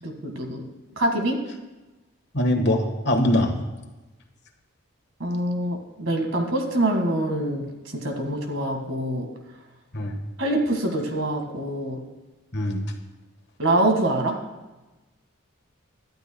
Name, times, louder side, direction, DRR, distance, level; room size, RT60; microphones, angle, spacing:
voice 1, 0.0-0.6 1.0-1.4 5.2-9.3 10.4-12.0 13.6-14.4, right 1 dB, 65° right, 3 dB, 1.9 m, -25 dB
voice 2, 2.3-3.5 9.9-10.2 12.5-12.9, left 1 dB, 55° left, 4 dB, 1.5 m, -22 dB
21.5 x 12.0 x 2.3 m, 1.1 s
head